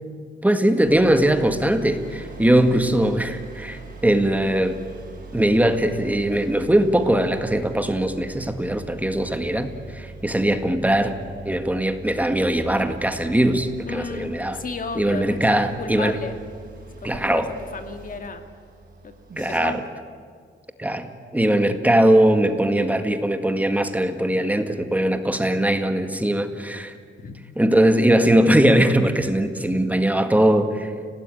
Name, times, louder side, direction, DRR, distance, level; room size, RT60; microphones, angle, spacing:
voice 1, 0.4-4.8 5.3-11.1 11.4-14.6 15.0-16.2 17.0-17.5 19.4-19.8 20.8-26.9 27.6-30.9, right 1 dB, 10° right, 7 dB, 1.8 m, -20 dB
sound 1, 0.8-19.6, right 3 dB, 45° right, 7.0 m, -41 dB
voice 2, 13.9-16.4 17.0-17.4 17.7-18.5 19.0-19.8 27.2-27.3, left 4 dB, 45° left, 6 dB, 2.4 m, -34 dB
30.0 x 18.0 x 9.2 m, 2.1 s
wide cardioid pair, 135°, 20 cm